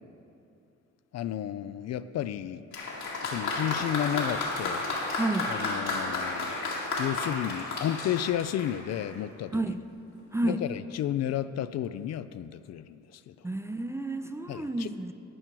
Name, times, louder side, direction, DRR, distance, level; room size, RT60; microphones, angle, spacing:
voice 1, 1.1-2.6 3.0-4.8 5.1-5.2 5.5-9.6 10.4-13.5 14.5-14.9, left 11 dB, 60° left, 13 dB, 0.4 m, -32 dB
Applause, 2.7-9.2 10.1-10.2, left 2 dB, 80° left, 2.3 m, -32 dB
voice 2, 5.2-5.5 9.5-9.8 10.3-10.6 13.4-15.1, right 2 dB, 10° right, 9 dB, 0.4 m, -30 dB
12.5 x 8.9 x 4.6 m, 2.7 s
cardioid pair, 90°, 30 cm